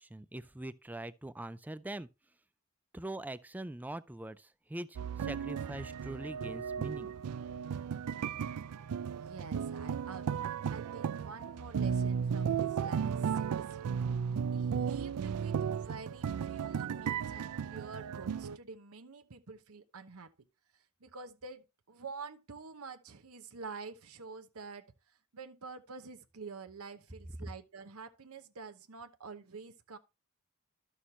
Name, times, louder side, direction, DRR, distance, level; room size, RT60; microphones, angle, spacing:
voice 1, 0.0-2.1 2.9-7.1 27.4-27.5, right 1 dB, 5° right, 0.3 m, -43 dB
sound 1, 5.0-18.6, right 7 dB, 90° right, 0.4 m, -35 dB
voice 2, 9.1-13.8 14.5-20.3 20.7-30.0, right 4 dB, 70° right, 0.9 m, -48 dB
12.5 x 6.4 x 2.8 m
head